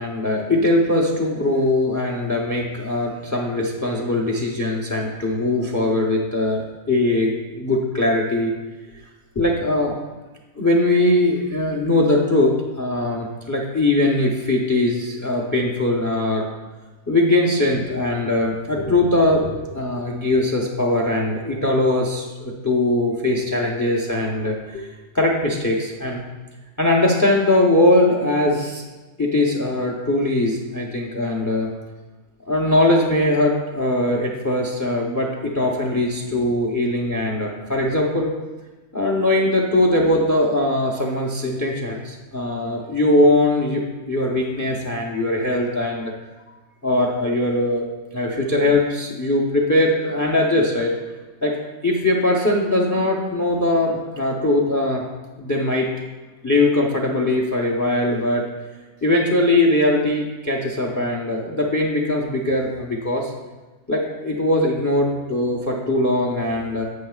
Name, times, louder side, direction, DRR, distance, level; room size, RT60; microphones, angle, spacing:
voice 1, 0.0-8.5 9.4-9.9 10.6-16.5 17.1-26.2 26.8-28.8 29.2-31.7 32.5-38.3 38.9-46.1 46.8-47.8 48.1-50.9 51.4-51.6 51.8-55.0 55.4-55.9 56.4-58.4 59.0-63.3 63.9-66.8, left 1 dB, 20° left, -1 dB, 0.5 m, -21 dB
9.5 x 7.5 x 2.4 m, 1.2 s
omnidirectional pair, 1.4 m